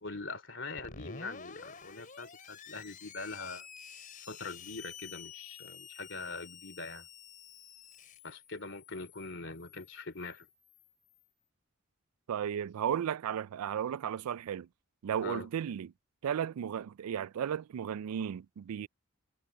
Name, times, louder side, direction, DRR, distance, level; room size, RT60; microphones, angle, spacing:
voice 1, 0.0-3.7 4.3-7.1 8.2-10.5 15.2-15.5, left 3 dB, 55° left, 2.9 m, -43 dB
Screech, 0.8-11.2, left 6 dB, 35° left, 4.8 m, -51 dB
voice 2, 12.3-14.7 15.0-15.9 16.2-18.9, right 9 dB, 85° right, 0.3 m, -34 dB
head